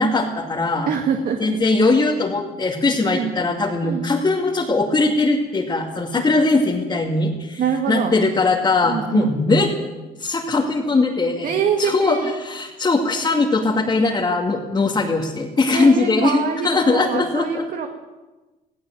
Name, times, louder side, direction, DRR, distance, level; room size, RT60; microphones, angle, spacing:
voice 1, 0.0-0.9 1.4-7.6 7.9-9.7 10.2-11.5 11.8-17.7, left 3 dB, 25° left, -2 dB, 2.5 m, -20 dB
voice 2, 0.9-1.4 3.0-3.3 3.8-4.1 7.2-8.1 8.8-9.4 11.4-12.3 15.7-17.9, right 7 dB, 55° right, 5 dB, 2.0 m, -24 dB
17.5 x 16.5 x 9.2 m, 1.2 s
cardioid pair, 110°, 17 cm